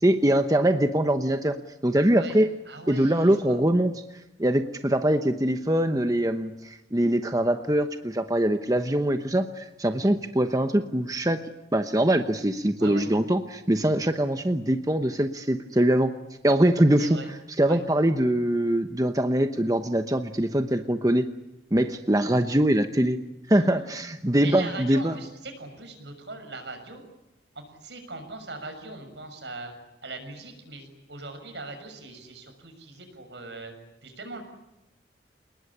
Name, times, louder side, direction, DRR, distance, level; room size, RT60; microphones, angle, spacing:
voice 1, 0.0-1.6 1.8-2.5 2.9-4.0 4.4-11.4 11.7-16.1 16.4-17.2 17.5-21.3 21.7-23.2 23.5-25.2, right 1 dB, 20° right, 8 dB, 1.0 m, -23 dB
voice 2, 2.7-3.6 12.8-13.1 17.0-17.3 17.6-17.8 23.5-23.9 24.2-27.0 27.5-29.7 30.0-33.7 34.0-34.4, right 3 dB, 70° right, 6 dB, 6.5 m, -40 dB
29.0 x 20.0 x 10.0 m, 0.95 s
head